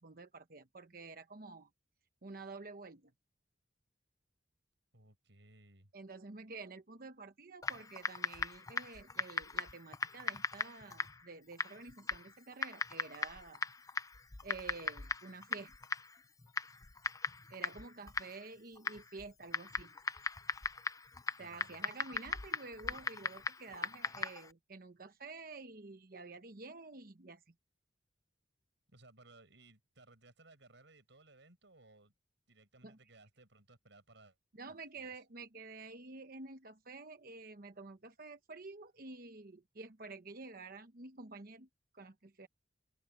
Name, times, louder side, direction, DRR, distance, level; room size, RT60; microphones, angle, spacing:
voice 1, 0.0-1.7 2.2-3.1 5.9-13.7 14.4-15.8 17.5-19.9 21.4-27.5 32.8-33.0 34.5-41.7 41.9-42.5, right 3 dB, 50° right, 1.0 m, -50 dB
voice 2, 4.9-5.9 21.4-21.9 28.9-32.1 32.5-34.4 34.9-35.2, right 2 dB, 80° right, 5.0 m, -61 dB
Typing, 7.6-24.5, left 4 dB, 20° left, 0.5 m, -40 dB
head